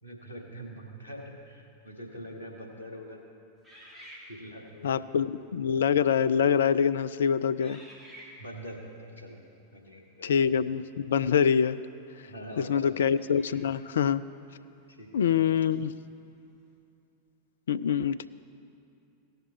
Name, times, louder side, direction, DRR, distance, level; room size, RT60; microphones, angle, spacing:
voice 1, 0.0-3.2 4.3-5.3 8.4-9.4 9.7-10.7 12.3-13.0 14.9-15.5, equal, 90° right, 0 dB, 2.0 m, -44 dB
sound 1, 3.6-4.8 5.6-5.8 6.5-6.8 7.6-8.7 11.4-11.5 13.0-13.9, equal, 10° right, 2.7 m, -51 dB
voice 2, 4.8-7.8 10.2-11.8 12.6-14.2 15.1-15.9 17.7-18.2, left 7 dB, 65° left, 15 dB, 0.3 m, -25 dB
17.5 x 6.6 x 4.4 m, 2.7 s
figure-of-eight pair, 90°, 0 cm